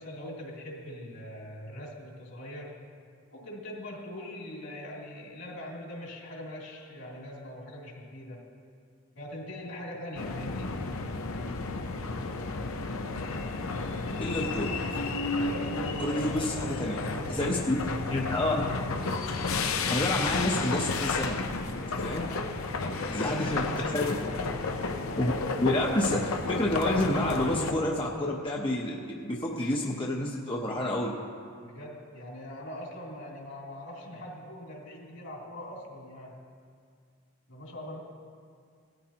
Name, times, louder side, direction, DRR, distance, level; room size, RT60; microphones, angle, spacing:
voice 1, 0.0-2.8 3.3-8.5 9.1-10.8 15.3-17.6 22.0-24.1 31.6-36.4 37.5-38.0, left 1 dB, 70° left, -3 dB, 3.0 m, -42 dB
sound 1, 10.2-27.7, left 3 dB, 90° left, 0.8 m, -32 dB
voice 2, 14.2-14.8 16.0-17.0 17.3-17.8 18.1-18.6 19.9-21.4 22.0-22.2 23.1-23.6 23.9-24.2 25.1-25.3 25.6-31.1, left 1 dB, 25° left, -2 dB, 0.8 m, -29 dB
18.0 x 13.0 x 2.9 m, 2.1 s
head